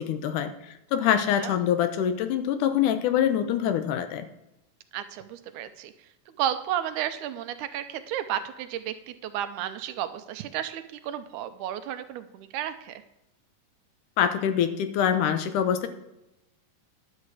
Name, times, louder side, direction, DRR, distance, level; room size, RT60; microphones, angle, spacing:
voice 1, 0.0-4.3 14.2-15.9, left 9 dB, 80° left, 10 dB, 2.3 m, -25 dB
voice 2, 4.9-5.9 6.4-13.0, right 10 dB, 80° right, 10 dB, 2.1 m, -32 dB
11.0 x 7.5 x 4.8 m, 0.89 s
omnidirectional pair, 3.6 m